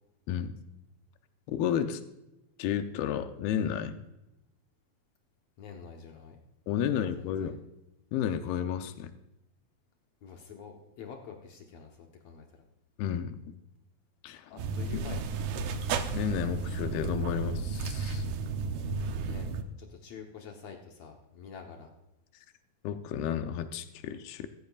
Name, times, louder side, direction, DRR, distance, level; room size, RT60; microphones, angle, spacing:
voice 1, 1.5-2.0 2.6-4.0 6.7-7.6 8.1-9.1 13.0-13.4 14.2-14.5 15.1-15.2 16.1-18.2 22.8-24.5, left 9 dB, 90° left, 9 dB, 2.7 m, -32 dB
voice 2, 5.6-6.4 6.8-7.6 10.2-12.5 14.5-15.3 19.2-19.5 19.8-21.9, left 6 dB, 70° left, 2 dB, 1.6 m, -47 dB
sound 1, 14.6-19.6, right 4 dB, 75° right, 1.7 m, -33 dB
15.0 x 14.0 x 2.4 m, 0.93 s
omnidirectional pair, 4.3 m